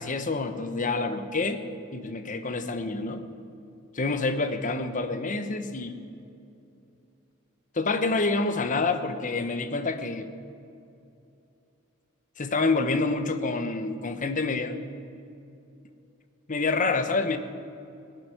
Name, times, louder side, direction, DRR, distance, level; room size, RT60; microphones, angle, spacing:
voice 1, 0.0-1.6 1.9-3.2 3.9-6.0 7.7-10.3 12.4-14.8 16.5-17.4, left 3 dB, 35° left, 8 dB, 1.0 m, -27 dB
17.0 x 7.9 x 9.9 m, 2.6 s
head